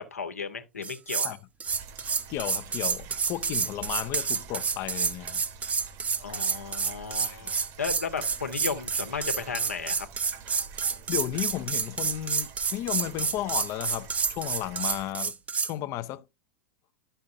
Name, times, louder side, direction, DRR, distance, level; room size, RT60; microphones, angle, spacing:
voice 1, 0.0-1.3 6.2-10.1, left 5 dB, 75° left, 1.3 m, -34 dB
sound 1, 0.8-1.3 1.6-15.7, right 5 dB, 15° right, 0.7 m, -29 dB
sound 2, 1.6-15.1, right 6 dB, 40° right, 1.2 m, -46 dB
voice 2, 2.3-5.4 7.2-7.5 11.1-15.4 15.6-16.3, left 13 dB, 40° left, 0.7 m, -34 dB
11.5 x 5.6 x 2.7 m
figure-of-eight pair, 90°, 8 cm